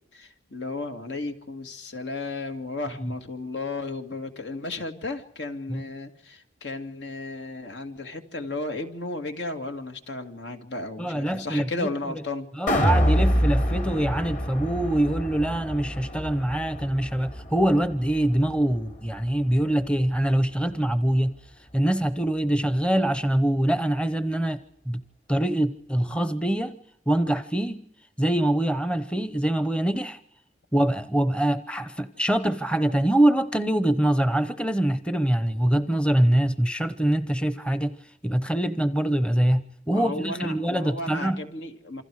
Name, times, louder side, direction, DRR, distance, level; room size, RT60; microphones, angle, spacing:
voice 1, 0.1-12.5 39.9-42.0, left 2 dB, 75° left, 2.4 m, -34 dB
voice 2, 11.0-11.9 12.6-21.4 21.7-24.6 24.9-25.0 25.3-26.8 27.1-27.9 28.2-30.2 30.7-38.0 38.2-41.4, right 1 dB, 5° left, 0.8 m, -24 dB
sound 1, 12.7-18.9 19.3-19.4, equal, 45° left, 3.2 m, -26 dB
28.0 x 25.5 x 4.9 m
head